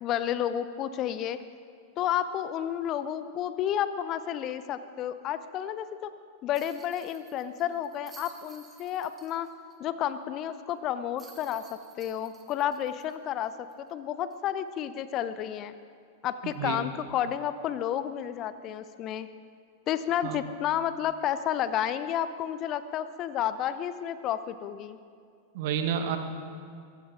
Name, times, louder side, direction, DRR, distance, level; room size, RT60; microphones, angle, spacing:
voice 1, 0.0-1.4 2.0-6.1 6.4-9.5 9.8-11.6 12.0-13.5 13.8-15.7 16.2-19.3 19.9-25.0, left 10 dB, 35° left, 13 dB, 0.8 m, -31 dB
sound 1, 6.5-9.8 10.1-10.2 11.2-13.9 14.3-14.4 16.5-16.7, right 4 dB, 20° right, 1.8 m, -55 dB
voice 2, 16.4-16.8 20.2-20.4 25.5-26.2, right 8 dB, 50° right, 7 dB, 1.5 m, -30 dB
23.0 x 15.0 x 3.8 m, 2.3 s
figure-of-eight pair, 90°, 0 cm